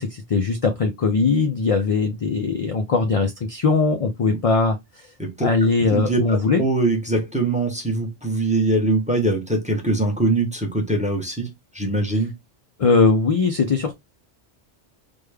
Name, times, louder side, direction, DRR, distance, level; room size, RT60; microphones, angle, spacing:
voice 1, 0.0-4.8 5.4-6.6 12.8-13.9, left 4 dB, 55° left, 0.4 m, -20 dB
voice 2, 5.9-12.3, right 2 dB, 10° right, 0.7 m, -22 dB
3.4 x 2.2 x 3.2 m
omnidirectional pair, 1.2 m